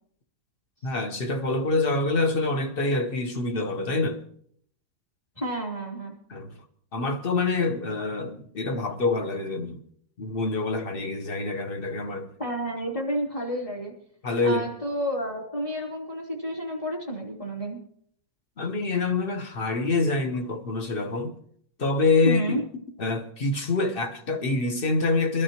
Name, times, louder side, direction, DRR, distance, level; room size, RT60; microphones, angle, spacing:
voice 1, 0.8-4.2 6.3-6.5 6.9-9.8 10.2-12.3 14.2-14.6 18.6-21.4 21.8-22.6 23.0-25.4, left 3 dB, 40° left, 1.1 m, -26 dB
voice 2, 5.4-6.1 12.4-13.9 14.4-17.8 22.2-22.6, right 1 dB, 20° left, 3.2 m, -30 dB
23.0 x 12.5 x 2.9 m
omnidirectional pair, 1.8 m